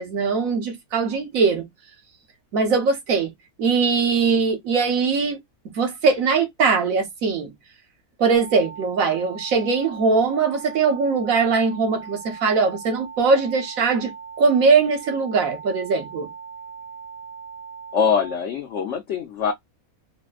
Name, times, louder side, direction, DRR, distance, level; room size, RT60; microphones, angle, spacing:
voice 1, 0.0-1.7 2.5-3.3 3.6-5.4 5.6-7.5 8.2-14.1 14.4-16.3, right 4 dB, 65° right, 1.4 m, -21 dB
sound 1, 8.3-18.4, right 6 dB, 30° left, 0.9 m, -39 dB
voice 2, 17.9-19.5, left 6 dB, 60° left, 0.9 m, -23 dB
4.2 x 2.1 x 2.3 m
omnidirectional pair, 1.6 m